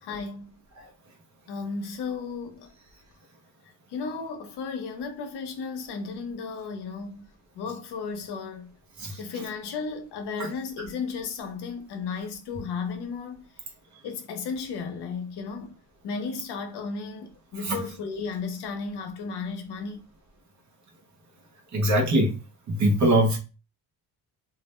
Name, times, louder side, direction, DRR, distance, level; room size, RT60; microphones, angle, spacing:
voice 1, 0.0-0.6 1.5-2.7 3.9-7.2 7.6-8.7 9.2-13.5 14.0-15.8 16.0-20.0, left 5 dB, 85° left, 0.7 m, -34 dB
voice 2, 21.7-22.3 22.7-23.4, right 1 dB, 45° right, 0.8 m, -22 dB
2.4 x 2.0 x 3.0 m
cardioid pair, 105°, 39 cm